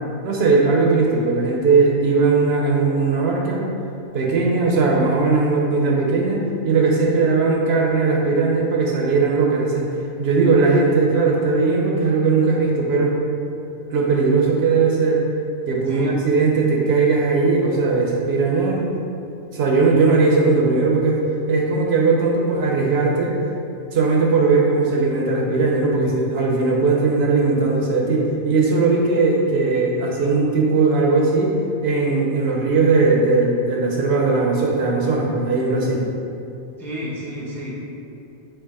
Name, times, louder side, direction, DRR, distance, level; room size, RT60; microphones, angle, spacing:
voice 1, 0.2-3.7 4.1-9.9 10.2-13.2 13.9-15.2 15.7-19.0 19.5-21.2 21.5-23.3 23.9-31.5 31.8-36.0, right 4 dB, 65° right, -1 dB, 0.8 m, -18 dB
voice 2, 15.9-16.2 36.8-37.7, equal, 5° left, -5 dB, 0.4 m, -31 dB
4.5 x 2.8 x 4.0 m, 2.6 s
omnidirectional pair, 1.2 m